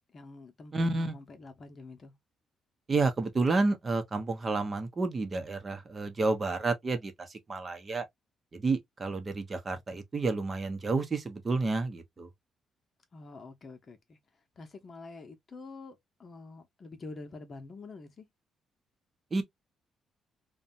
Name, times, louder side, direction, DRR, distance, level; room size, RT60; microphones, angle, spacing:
voice 1, 0.1-2.1 13.1-14.2 14.6-18.3, left 3 dB, 40° left, 0.8 m, -47 dB
voice 2, 0.7-1.1 2.9-8.1 8.5-12.3 19.3-19.4, right 3 dB, 35° right, 0.7 m, -30 dB
2.7 x 2.2 x 2.5 m
cardioid pair, 90°, 0 cm